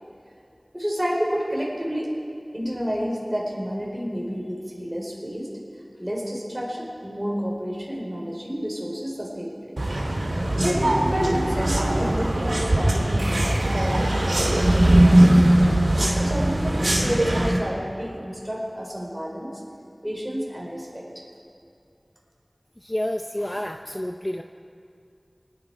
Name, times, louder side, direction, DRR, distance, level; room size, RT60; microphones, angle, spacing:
voice 1, 0.7-2.2 2.5-5.5 6.0-9.8 10.6-15.7 16.2-19.6 20.0-21.0, equal, 10° right, -3 dB, 4.6 m, -30 dB
sound 1, 9.8-17.6, right 1 dB, 85° right, 2.5 m, -20 dB
sound 2, 13.2-16.2, right 1 dB, 60° right, 3.6 m, -40 dB
voice 2, 22.8-24.4, left 1 dB, 25° left, 5 dB, 0.6 m, -29 dB
24.5 x 10.5 x 4.9 m, 2.5 s
wide cardioid pair, 40°, 0 cm